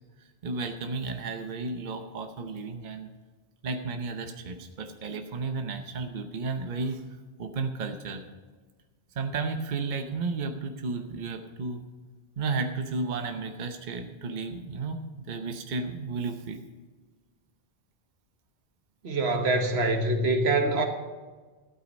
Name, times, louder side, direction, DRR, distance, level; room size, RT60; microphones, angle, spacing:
voice 1, 0.4-3.1 3.6-7.0 7.4-8.2 9.2-11.8 12.4-16.6, right 4 dB, 50° right, 5 dB, 0.9 m, -33 dB
voice 2, 19.0-20.8, right 2 dB, 75° right, 5 dB, 1.4 m, -24 dB
12.5 x 8.4 x 5.2 m, 1.3 s
omnidirectional pair, 1.1 m